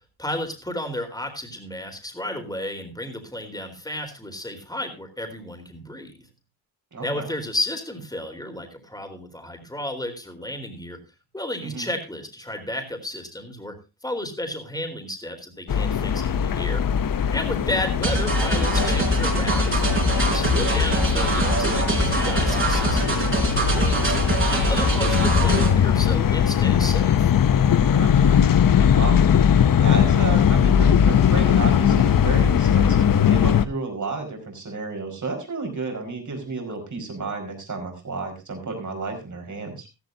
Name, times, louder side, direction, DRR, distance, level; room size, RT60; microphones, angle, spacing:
voice 1, 0.2-6.3 7.0-11.0 11.3-13.8 14.0-16.8 17.3-24.1 24.5-27.3, left 1 dB, 10° left, 5 dB, 3.9 m, -32 dB
voice 2, 6.9-7.3 11.6-11.9 27.9-28.4 28.9-29.2 29.8-39.9, right 3 dB, 50° right, 4 dB, 5.0 m, -32 dB
sound 1, 15.7-33.6, left 8 dB, 60° left, 0.8 m, -20 dB
sound 2, 18.0-25.7, right 2 dB, 35° right, 4.2 m, -23 dB
15.5 x 14.5 x 2.7 m, 0.27 s
wide cardioid pair, 105°, 38 cm